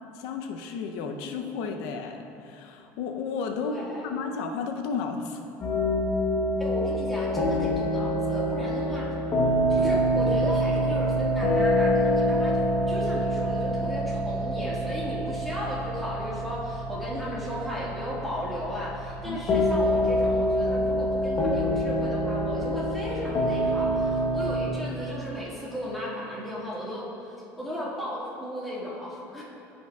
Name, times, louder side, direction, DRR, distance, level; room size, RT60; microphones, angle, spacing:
voice 1, 0.1-5.4 19.2-19.4, left 5 dB, 85° left, 4 dB, 0.5 m, -33 dB
voice 2, 3.6-4.1 6.6-9.1 9.7-29.4, equal, ahead, -7 dB, 1.7 m, -35 dB
sound 1, 5.6-24.7, equal, 35° left, 1.0 m, -26 dB
14.5 x 5.4 x 2.3 m, 2.7 s
cardioid pair, 145°, 6 cm